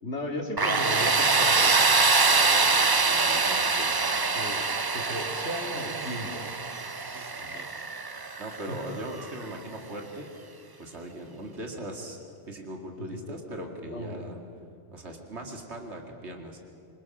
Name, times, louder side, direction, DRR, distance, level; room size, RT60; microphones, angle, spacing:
voice 1, 0.0-2.0 2.3-2.7 4.3-6.5 7.4-7.9 8.7-8.8 13.0-13.4 13.8-14.3, left 1 dB, 80° left, 2 dB, 3.1 m, -36 dB
Tools, 0.6-9.3, right 4 dB, 25° right, 0.6 m, -24 dB
voice 2, 2.5-4.1 7.1-7.3 8.4-10.3 10.8-12.2 12.4-14.4 14.9-16.6, right 1 dB, 75° right, 2 dB, 2.6 m, -40 dB
27.5 x 24.5 x 6.1 m, 2.6 s
omnidirectional pair, 1.2 m